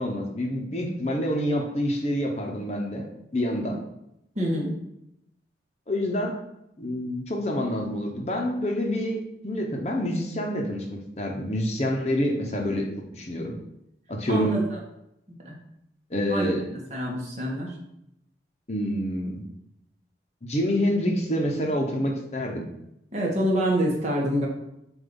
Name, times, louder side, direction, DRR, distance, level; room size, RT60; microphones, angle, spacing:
voice 1, 0.0-3.0 3.3-3.8 5.9-6.3 6.8-9.2 9.4-12.9 13.1-13.5 14.1-14.6 16.1-16.6 18.7-19.4 20.4-22.6, equal, 35° left, 1 dB, 0.9 m, -27 dB
voice 2, 4.3-4.8 14.3-14.6 15.4-15.6 16.3-16.5 16.9-17.7 23.1-24.5, equal, 40° right, -2 dB, 1.4 m, -26 dB
7.6 x 2.7 x 5.4 m, 0.82 s
head